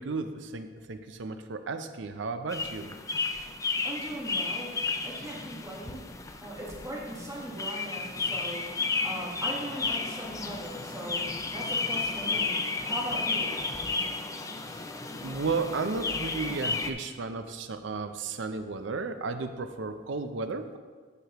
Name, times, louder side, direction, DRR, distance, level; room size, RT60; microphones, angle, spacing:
voice 1, 0.0-2.9 14.7-14.8 15.2-20.8, right 4 dB, 70° right, 8 dB, 0.5 m, -34 dB
sound 1, 2.5-16.9, left 4 dB, 15° left, 0.3 m, -33 dB
voice 2, 3.8-4.7 5.0-6.0 6.4-8.6 9.0-11.2 11.5-13.6, right 1 dB, 15° right, -4 dB, 1.4 m, -39 dB
9.6 x 6.4 x 3.0 m, 1.5 s
head